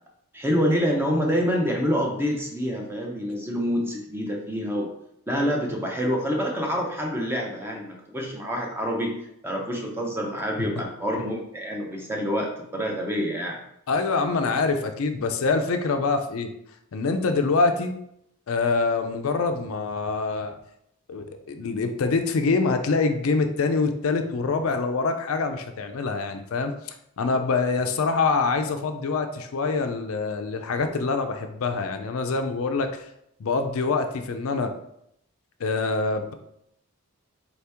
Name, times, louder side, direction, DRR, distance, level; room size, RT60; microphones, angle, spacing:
voice 1, 0.3-4.9 5.3-9.1 9.4-13.6, equal, 10° right, 0 dB, 0.6 m, -27 dB
voice 2, 13.9-16.5 16.9-18.0 18.5-20.5 21.1-33.1 33.4-34.7 35.6-36.3, left 4 dB, 70° left, 6 dB, 0.4 m, -25 dB
4.2 x 2.9 x 3.4 m, 0.75 s
head